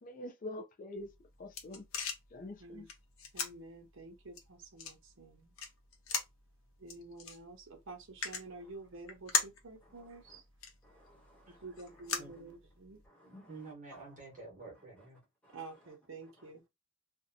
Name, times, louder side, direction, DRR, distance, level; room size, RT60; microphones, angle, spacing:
voice 1, 0.0-1.1 1.4-1.8 2.3-2.9, left 1 dB, 40° left, 0.4 m, -44 dB
sound 1, 1.0-13.1, left 5 dB, 90° left, 0.7 m, -41 dB
voice 2, 3.3-5.5 6.8-10.4 11.5-13.0 15.5-16.6, right 3 dB, 65° right, 0.7 m, -50 dB
voice 3, 9.9-10.4 10.8-12.4 13.0-13.6 13.9-14.0 15.4-15.6 16.4-16.5, left 1 dB, 5° left, 1.1 m, -60 dB
voice 4, 12.2-12.5 12.9-15.2, right 3 dB, 40° right, 1.0 m, -50 dB
2.6 x 2.1 x 2.5 m
head